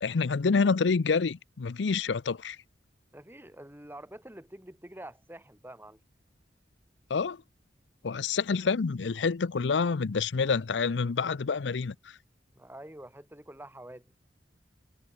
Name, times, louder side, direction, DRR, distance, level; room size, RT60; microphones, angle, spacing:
voice 1, 0.0-2.6 7.1-7.4 8.0-12.2, left 5 dB, 85° left, 0.6 m, -27 dB
voice 2, 3.1-6.0 12.6-14.1, right 1 dB, 10° right, 4.2 m, -47 dB
head